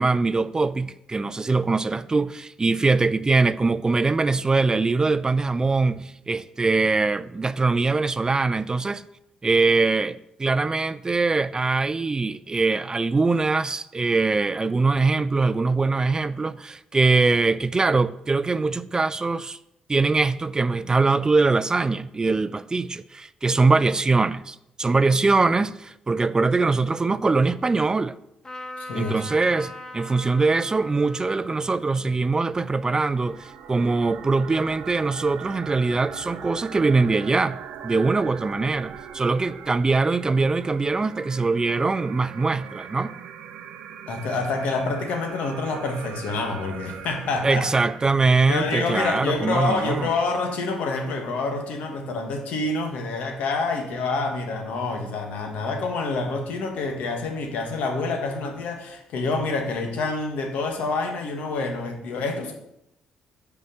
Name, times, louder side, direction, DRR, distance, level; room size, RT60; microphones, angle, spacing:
voice 1, 0.0-9.0 9.4-19.6 19.9-28.2 28.9-37.6 37.8-43.1 47.4-50.1, right 3 dB, 25° right, 0.4 m, -22 dB
Trumpet, 28.4-34.0, left 1 dB, 30° left, 1.4 m, -42 dB
voice 2, 28.8-29.1 44.1-47.7 48.5-62.5, left 3 dB, 75° left, 1.4 m, -27 dB
sound 1, 32.4-50.2, right 8 dB, 75° right, 0.6 m, -41 dB
5.3 x 4.7 x 6.4 m
supercardioid pair, 55°, 3 cm